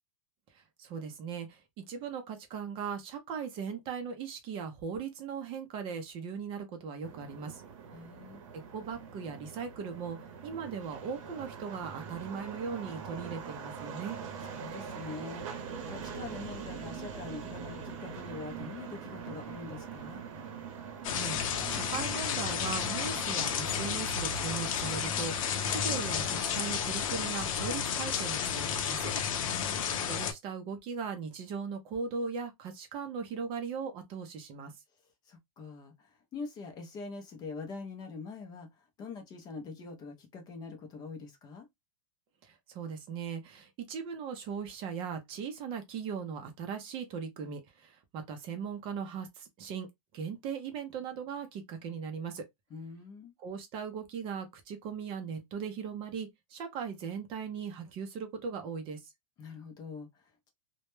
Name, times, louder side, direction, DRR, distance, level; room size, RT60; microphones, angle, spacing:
voice 1, 0.5-7.6 8.5-14.2 21.1-29.1 30.0-34.7 42.4-49.9 50.1-52.5 53.4-59.1, right 6 dB, 30° right, 0.5 m, -39 dB
sound 1, 7.0-26.4, right 6 dB, 60° right, 0.8 m, -44 dB
voice 2, 7.9-8.4 14.4-20.2 29.4-29.9 35.3-41.7 52.7-53.3 59.4-60.5, left 4 dB, 20° left, 0.5 m, -44 dB
sound 2, 21.0-30.3, left 7 dB, 65° left, 0.6 m, -32 dB
2.1 x 2.1 x 3.0 m
supercardioid pair, 150°, 18 cm